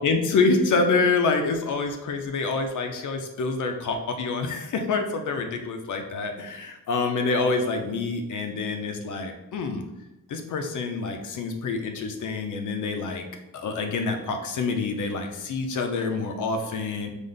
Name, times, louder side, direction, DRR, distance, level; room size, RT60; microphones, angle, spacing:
voice 1, 0.0-9.8 10.3-13.2 13.5-17.1, left 4 dB, 65° left, 5 dB, 0.6 m, -26 dB
5.1 x 2.1 x 3.8 m, 0.95 s
wide cardioid pair, 155°, 33 cm